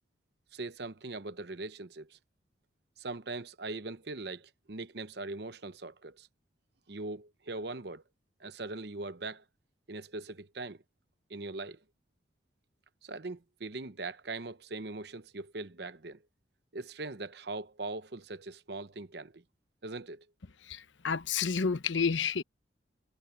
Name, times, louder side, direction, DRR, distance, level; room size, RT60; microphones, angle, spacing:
voice 1, 0.5-2.2 3.0-6.3 6.9-8.0 8.4-9.4 9.9-10.8 11.3-11.8 13.0-16.2 16.7-19.4 19.8-20.3, right 3 dB, 60° right, 0.9 m, -41 dB
voice 2, 20.7-22.4, left 5 dB, 85° left, 0.9 m, -30 dB
head